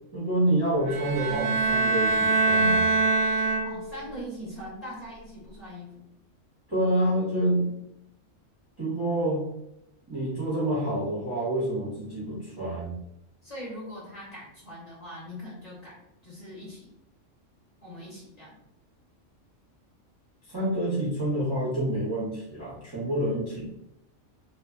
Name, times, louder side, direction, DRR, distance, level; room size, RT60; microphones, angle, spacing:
voice 1, 0.1-2.9 6.7-7.8 8.8-9.5 10.1-13.0 20.5-23.7, right 1 dB, 25° right, -9 dB, 0.5 m, -27 dB
sound 1, 0.9-4.1, right 3 dB, 70° right, 0.8 m, -24 dB
voice 2, 3.6-5.9 13.4-16.0 16.2-16.9 17.8-18.6, equal, 35° left, -7 dB, 0.8 m, -41 dB
2.6 x 2.3 x 2.3 m, 0.81 s
omnidirectional pair, 1.3 m